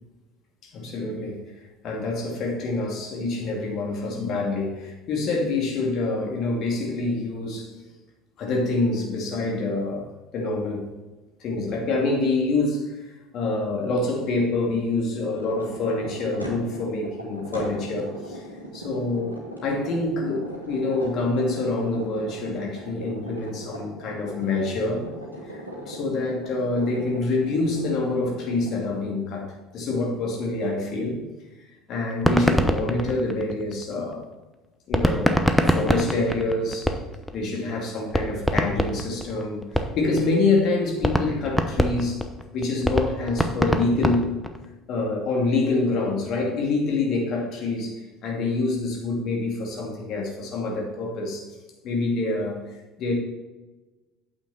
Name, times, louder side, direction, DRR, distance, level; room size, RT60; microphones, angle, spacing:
voice 1, 0.6-1.4 1.8-7.8 8.4-10.1 10.3-10.8 11.4-18.4 18.7-19.3 19.6-25.1 25.4-31.2 31.9-34.2 34.9-35.4 35.6-36.9 37.3-42.2 42.5-44.3 44.9-51.5 51.8-52.6 53.0-53.1, left 3 dB, 50° left, 0 dB, 2.4 m, -26 dB
sound 1, 15.4-29.0, right 1 dB, 90° right, 1.5 m, -38 dB
sound 2, 32.1-33.9 34.9-37.4 37.7-37.8 38.1-40.2 40.6-40.7 41.0-44.7, equal, ahead, 0.9 m, -23 dB
8.8 x 7.0 x 4.2 m, 1.2 s
figure-of-eight pair, 65°, 0 cm